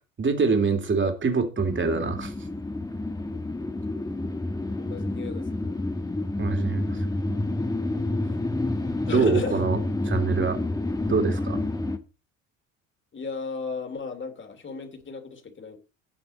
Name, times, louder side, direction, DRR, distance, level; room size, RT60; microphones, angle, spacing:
voice 1, 0.2-2.3 6.4-7.0 9.1-9.8 10.0-10.6 11.1-11.6, right 4 dB, 30° right, 2.9 m, -24 dB
sound 1, 1.6-12.0, left 2 dB, 10° left, 1.4 m, -29 dB
voice 2, 4.8-5.8 8.3-8.4 9.1-9.6 13.1-15.8, left 5 dB, 30° left, 2.7 m, -35 dB
16.5 x 6.0 x 4.1 m
hypercardioid pair, 65°, 39 cm